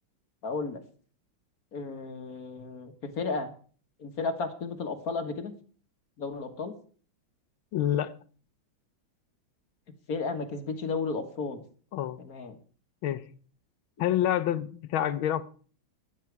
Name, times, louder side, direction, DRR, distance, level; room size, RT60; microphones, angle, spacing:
voice 1, 0.4-0.8 1.7-3.5 4.0-5.5 6.2-6.7 10.1-11.6 12.2-12.6, left 4 dB, 50° left, 1.7 m, -33 dB
voice 2, 7.7-8.1 11.9-12.2 13.0-13.3 14.0-15.4, left 11 dB, 80° left, 1.6 m, -27 dB
13.0 x 11.0 x 4.7 m
omnidirectional pair, 2.2 m